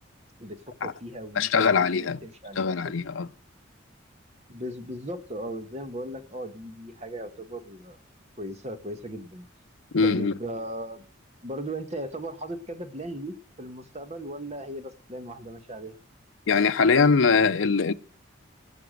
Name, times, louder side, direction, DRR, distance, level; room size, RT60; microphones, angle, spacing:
voice 1, 0.4-2.9 4.5-8.0 8.4-9.5 10.0-11.1 11.4-16.0, right 1 dB, 30° right, 1.4 m, -37 dB
voice 2, 1.4-2.2 2.6-3.3 9.9-10.3 16.5-17.9, left 5 dB, 75° left, 0.6 m, -22 dB
18.0 x 6.0 x 7.7 m
head